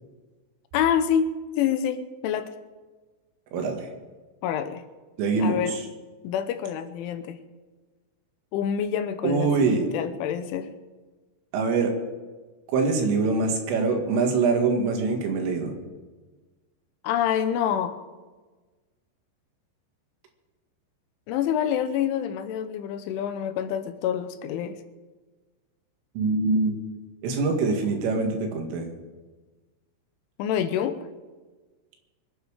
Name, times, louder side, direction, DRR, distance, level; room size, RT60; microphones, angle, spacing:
voice 1, 0.7-1.3 1.6-2.5 4.4-4.8 5.4-5.8 6.2-7.4 8.5-10.7 17.0-18.0 21.3-24.8 30.4-31.0, left 9 dB, 80° left, 10 dB, 3.3 m, -27 dB
voice 2, 3.5-3.9 5.2-5.8 9.2-9.9 11.5-11.9 12.7-15.8 26.2-26.8 27.2-28.9, right 4 dB, 90° right, 3 dB, 4.6 m, -24 dB
24.0 x 9.5 x 5.0 m, 1.3 s
omnidirectional pair, 5.6 m